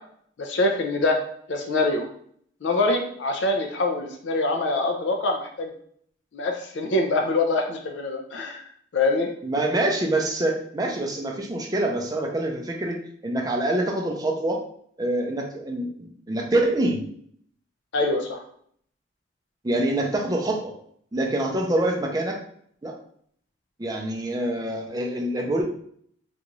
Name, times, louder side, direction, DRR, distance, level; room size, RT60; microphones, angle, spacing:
voice 1, 0.4-1.2 1.5-2.1 2.6-5.7 6.3-8.6 8.9-9.3 17.9-18.4, left 2 dB, 70° left, 3 dB, 0.5 m, -24 dB
voice 2, 9.4-14.6 15.0-17.0 19.6-20.8 21.1-22.4 22.8-23.0 23.8-25.6, right 1 dB, 20° right, 1 dB, 0.5 m, -25 dB
3.9 x 2.4 x 3.0 m, 0.63 s
head